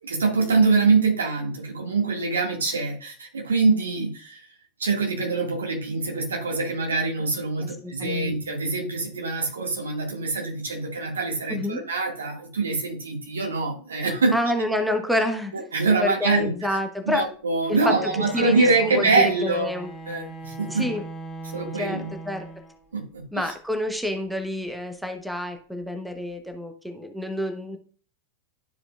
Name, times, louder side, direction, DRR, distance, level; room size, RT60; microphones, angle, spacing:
voice 1, 0.0-4.5 4.8-14.4 15.5-16.8 17.1-19.7 20.1-20.9 21.4-22.1 22.9-23.5, right 3 dB, 70° right, 1 dB, 1.8 m, -24 dB
voice 2, 7.6-8.3 11.5-11.8 14.3-15.7 16.0-17.3 17.7-17.9 18.3-19.9 20.7-21.0 21.8-22.5 23.3-27.8, left 1 dB, ahead, 7 dB, 0.8 m, -28 dB
Bowed string instrument, 17.6-23.0, right 2 dB, 15° left, 1.7 m, -39 dB
12.0 x 4.9 x 2.3 m, 0.43 s
figure-of-eight pair, 90°, 0 cm